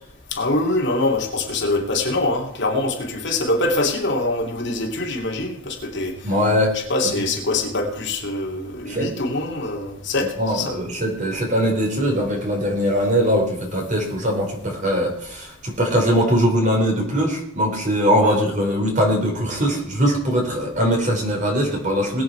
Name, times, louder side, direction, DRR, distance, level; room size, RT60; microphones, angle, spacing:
voice 1, 0.3-6.2 6.7-10.7 18.2-18.3, left 2 dB, 55° left, 0 dB, 2.8 m, -24 dB
voice 2, 6.2-6.7 8.9-9.1 10.4-22.2, equal, 35° right, 0 dB, 4.5 m, -21 dB
21.5 x 8.5 x 4.7 m, 0.74 s
head